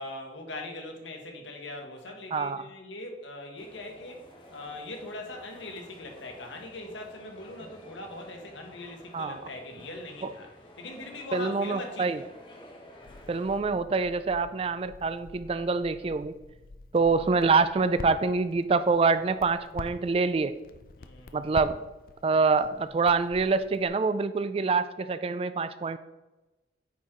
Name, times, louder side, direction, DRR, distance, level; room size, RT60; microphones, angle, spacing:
voice 1, 0.0-10.5 10.8-12.3 17.0-17.1 21.0-21.5, left 2 dB, 90° left, 2 dB, 1.4 m, -41 dB
sound 1, 3.6-13.6, equal, 25° left, 0.9 m, -51 dB
voice 2, 11.3-12.2 13.3-16.3 16.9-20.5 21.3-21.8 22.2-26.0, right 4 dB, 30° right, 12 dB, 0.3 m, -26 dB
Crackle, 13.0-23.9, left 3 dB, 50° left, 0.4 m, -47 dB
9.3 x 4.6 x 3.7 m, 1.1 s
head